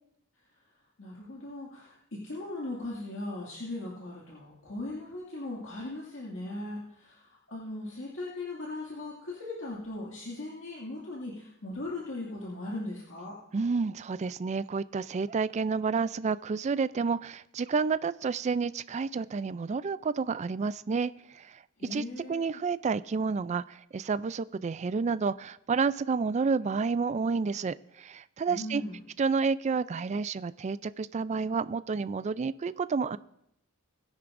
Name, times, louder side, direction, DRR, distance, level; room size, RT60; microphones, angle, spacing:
voice 1, 1.0-13.4 21.8-22.5 28.5-29.0, left 2 dB, 65° left, -5 dB, 2.2 m, -38 dB
voice 2, 13.5-21.6 21.9-22.0 22.3-28.8 29.2-33.2, right 5 dB, 35° right, 16 dB, 0.3 m, -30 dB
19.5 x 10.5 x 2.6 m, 0.77 s
head